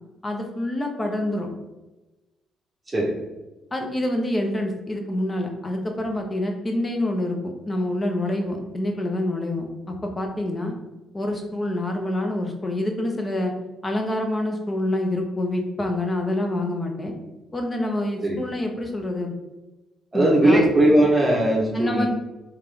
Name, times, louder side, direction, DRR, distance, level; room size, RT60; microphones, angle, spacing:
voice 1, 0.2-1.5 3.7-10.8 11.1-13.5 13.8-17.1 17.5-19.3 20.1-20.6 21.7-22.1, left 1 dB, 25° left, 3 dB, 0.8 m, -26 dB
voice 2, 20.1-22.1, right 1 dB, 20° right, -4 dB, 0.9 m, -18 dB
3.7 x 3.5 x 3.3 m, 1.1 s
cardioid pair, 90°, 0 cm